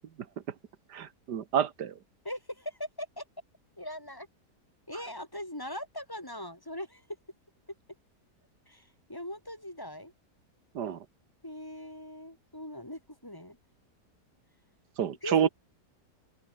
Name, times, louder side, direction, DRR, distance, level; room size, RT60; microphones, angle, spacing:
voice 1, 0.9-1.9 10.8-11.0 15.0-15.5, right 9 dB, 75° right, 1.8 m, -28 dB
voice 2, 2.2-3.3 3.8-4.3 4.9-7.0 8.7-10.1 11.4-13.6 15.2-15.5, left 1 dB, 10° left, 3.5 m, -41 dB
open air
omnidirectional pair, 1.8 m